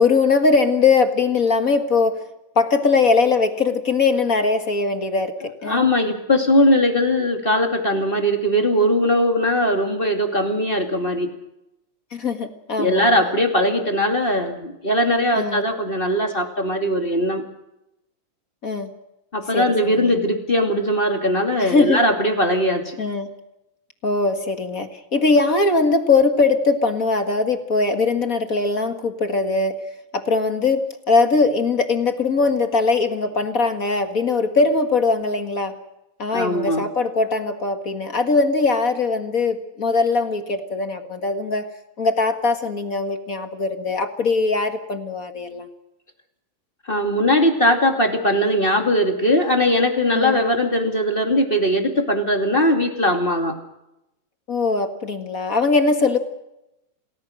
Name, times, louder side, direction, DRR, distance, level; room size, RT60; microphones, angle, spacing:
voice 1, 0.0-2.2 2.5-5.3 5.6-5.8 12.1-13.3 15.3-15.6 18.6-18.9 19.5-20.1 21.6-22.0 23.0-23.3 24.0-29.8 30.1-35.7 36.2-41.7 42.0-45.7 50.1-50.4 54.5-56.2, left 4 dB, 35° left, 7 dB, 1.7 m, -20 dB
voice 2, 5.7-11.3 12.8-17.4 19.3-23.0 36.3-36.8 46.9-53.5, equal, 20° left, 4 dB, 2.4 m, -20 dB
29.0 x 19.0 x 6.4 m, 0.88 s
omnidirectional pair, 3.5 m